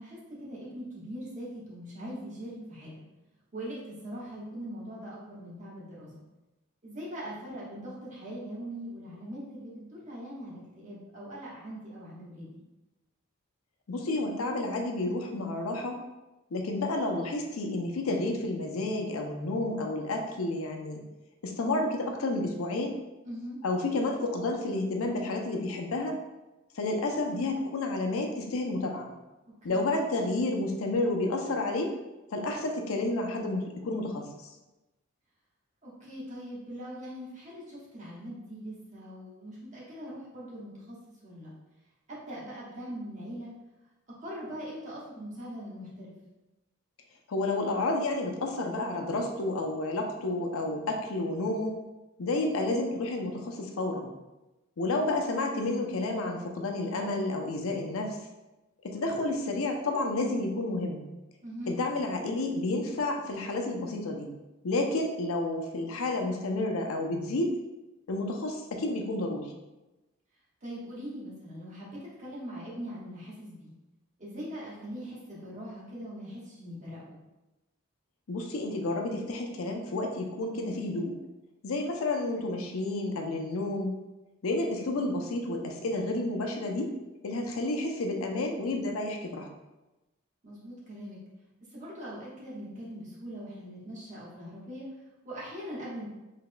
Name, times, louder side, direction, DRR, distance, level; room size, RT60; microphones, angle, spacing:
voice 1, 0.0-2.9 3.5-6.1 6.8-12.6 23.2-23.6 29.7-29.9 35.8-41.0 41.2-41.5 42.1-43.5 44.2-46.1 56.8-57.1 61.4-61.8 70.6-73.7 74.2-77.2 84.8-85.0 90.4-91.2 91.7-94.9 95.2-96.1, equal, 35° right, -7 dB, 1.2 m, -41 dB
voice 2, 13.9-16.0 16.5-21.0 21.4-23.0 23.6-26.2 26.8-29.1 29.6-31.9 32.3-34.3 47.3-51.8 52.2-54.1 54.8-58.2 58.8-61.0 61.7-64.3 64.6-67.5 68.1-69.5 78.3-81.1 81.6-83.9 84.4-86.9 87.2-89.5, left 2 dB, 90° left, 3 dB, 0.5 m, -30 dB
3.8 x 3.5 x 2.2 m, 1.0 s
head